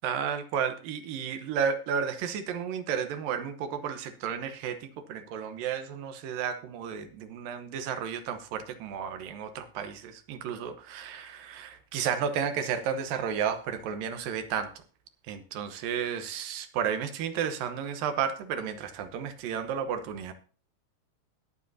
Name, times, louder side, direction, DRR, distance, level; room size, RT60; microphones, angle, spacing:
voice 1, 0.0-14.8 15.3-20.3, right 7 dB, 75° right, 9 dB, 2.6 m, -32 dB
20.5 x 7.6 x 2.7 m, 0.38 s
omnidirectional pair, 4.2 m